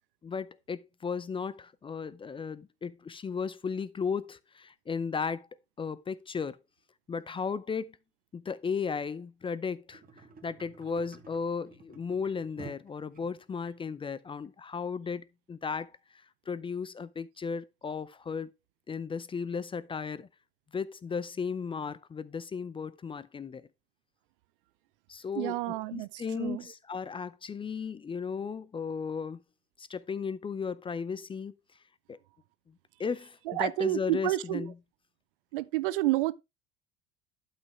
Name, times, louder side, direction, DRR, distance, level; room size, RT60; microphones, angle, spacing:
voice 1, 0.2-5.5 5.8-6.6 7.1-8.0 8.3-10.0 10.4-18.5 18.9-20.3 20.7-23.7 25.1-29.4 29.8-31.5 32.1-32.2 33.0-34.7, left 5 dB, 15° left, 0.5 m, -35 dB
sound 1, 9.9-13.7 14.4-14.5, right 4 dB, 30° right, 2.0 m, -52 dB
voice 2, 25.3-26.1 26.4-26.6 33.5-34.7 35.5-36.3, right 17 dB, 60° right, 0.6 m, -29 dB
12.0 x 5.8 x 3.2 m
figure-of-eight pair, 65°, 30 cm